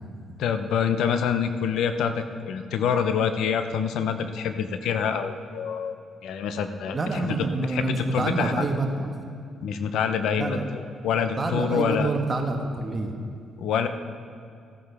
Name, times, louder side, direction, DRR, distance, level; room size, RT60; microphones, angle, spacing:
voice 1, 0.4-5.9 6.2-8.7 9.6-12.1 13.6-13.9, left 7 dB, 80° left, 9 dB, 0.7 m, -26 dB
voice 2, 6.9-9.1 10.4-10.6 11.4-13.1, right 3 dB, 30° right, 3 dB, 1.4 m, -27 dB
16.0 x 9.0 x 3.5 m, 2.4 s
cardioid pair, 90°, 0 cm